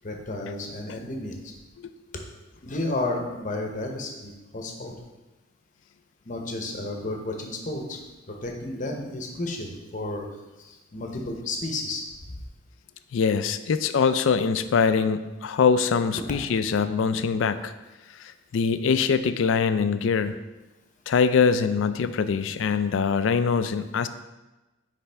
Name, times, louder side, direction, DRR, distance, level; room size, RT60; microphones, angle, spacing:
voice 1, 0.0-1.5 2.6-4.9 6.2-8.0 8.3-10.3 10.6-12.4, left 2 dB, 40° left, 2 dB, 0.8 m, -32 dB
voice 2, 13.1-17.7 18.2-20.3 21.1-24.1, left 6 dB, 75° left, 11 dB, 0.4 m, -23 dB
9.6 x 3.4 x 3.4 m, 1.1 s
head